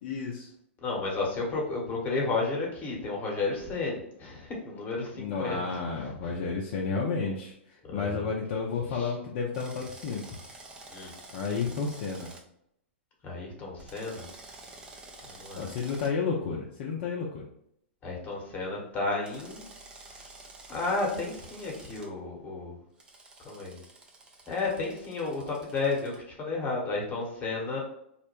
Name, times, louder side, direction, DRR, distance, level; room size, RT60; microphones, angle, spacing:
voice 1, 0.0-0.5 5.2-10.4 11.3-12.3 15.5-17.4, left 5 dB, 50° left, -2 dB, 0.5 m, -31 dB
voice 2, 0.8-5.8 6.2-6.3 7.8-8.3 8.9-9.1 10.9-11.1 13.2-14.2 15.3-15.7 18.0-19.6 20.1-20.3 20.7-22.8 23.4-23.8 24.5-27.8, left 3 dB, 25° left, -1 dB, 1.0 m, -32 dB
Drill, 9.5-12.4 13.8-16.1 19.2-22.1 23.0-26.2, right 2 dB, 15° right, 0.4 m, -49 dB
2.4 x 2.1 x 3.0 m, 0.72 s
hypercardioid pair, 110°, 7 cm